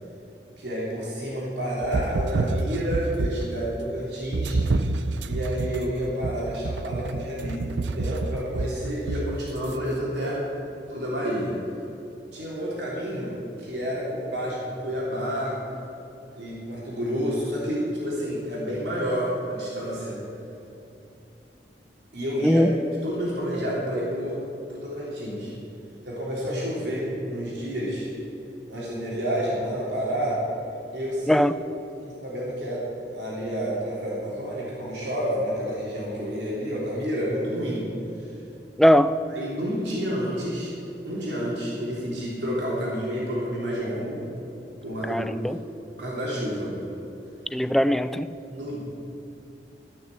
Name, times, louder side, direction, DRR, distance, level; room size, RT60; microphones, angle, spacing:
voice 1, 0.6-4.6 5.3-10.4 10.9-11.6 12.3-15.6 16.4-20.2 22.1-22.6 23.0-24.4 24.7-25.5 26.0-28.1 28.7-30.4 30.9-31.4 32.0-37.9 38.2-38.3 39.3-40.8 41.0-44.2 44.8-45.7 46.0-46.7 48.5-48.8, equal, 75° right, -6 dB, 3.4 m, -29 dB
sound 1, 1.8-3.6 4.3-9.8, right 2 dB, 90° right, 0.6 m, -28 dB
voice 2, 38.8-39.1 45.1-45.6 47.5-48.3, equal, ahead, 12 dB, 0.3 m, -20 dB
14.0 x 6.6 x 8.1 m, 2.9 s
head